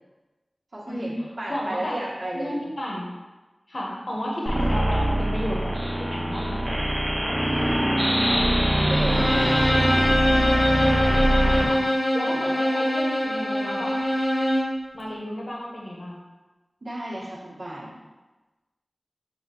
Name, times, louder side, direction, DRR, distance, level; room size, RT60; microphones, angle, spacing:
voice 1, 0.7-2.7 7.3-8.4 8.8-10.1 11.4-11.6 12.2-12.4 16.8-18.0, right 1 dB, 65° right, -6 dB, 1.0 m, -34 dB
voice 2, 1.5-2.1 2.3-3.1 3.7-5.7 6.0-6.6 11.2-11.8 12.1-14.0 14.9-16.2, equal, 60° left, -2 dB, 0.9 m, -32 dB
sound 1, 4.5-11.7, right 1 dB, 20° right, 0.9 m, -23 dB
Bowed string instrument, 9.0-14.8, left 1 dB, 35° left, 0.8 m, -23 dB
5.8 x 2.2 x 3.6 m, 1.2 s
wide cardioid pair, 70°, 0 cm